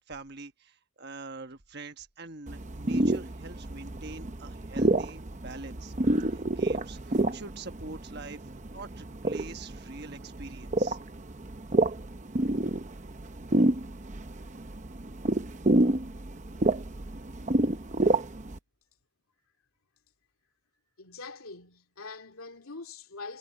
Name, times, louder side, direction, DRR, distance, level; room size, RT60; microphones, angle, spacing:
voice 1, 0.0-5.9 6.3-8.4 8.7-11.0, right 3 dB, 50° right, 1.3 m, -44 dB
sound 1, 2.5-18.6, right 2 dB, 35° right, 0.8 m, -29 dB
voice 2, 21.0-23.4, left 3 dB, 80° left, 2.7 m, -43 dB
head